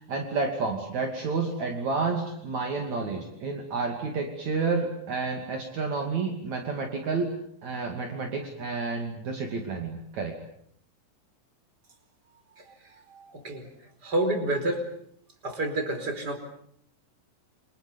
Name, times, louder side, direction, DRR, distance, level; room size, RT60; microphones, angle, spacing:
voice 1, 0.0-7.3 7.6-10.4, right 4 dB, 55° right, 3 dB, 3.9 m, -30 dB
voice 2, 13.1-13.7 14.0-14.9 15.4-16.4, right 1 dB, 30° right, 7 dB, 5.0 m, -29 dB
28.5 x 26.5 x 7.1 m, 0.66 s
omnidirectional pair, 4.0 m